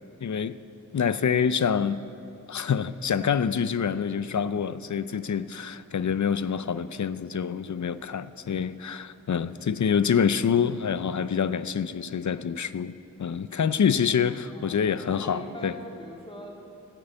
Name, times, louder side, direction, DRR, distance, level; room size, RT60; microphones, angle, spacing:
voice 1, 0.2-0.6 0.9-2.0 2.5-12.9 13.2-15.7, left 7 dB, 65° left, 0.5 m, -26 dB
voice 2, 14.5-16.6, equal, 15° left, 3.0 m, -42 dB
14.0 x 8.7 x 8.9 m
wide cardioid pair, 65°, 31 cm